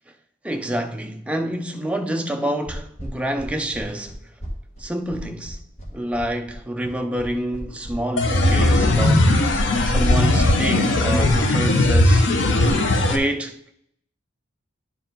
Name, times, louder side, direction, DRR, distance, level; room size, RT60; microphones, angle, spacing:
voice 1, 0.4-4.2 4.8-5.6 5.9-9.3 9.8-12.3 13.0-13.7, right 1 dB, 5° right, 0.4 m, -27 dB
sound 1, 2.7-7.9, equal, 35° left, 1.5 m, -36 dB
sound 2, 8.2-13.2, left 1 dB, 60° left, 0.8 m, -18 dB
10.5 x 4.6 x 3.9 m
head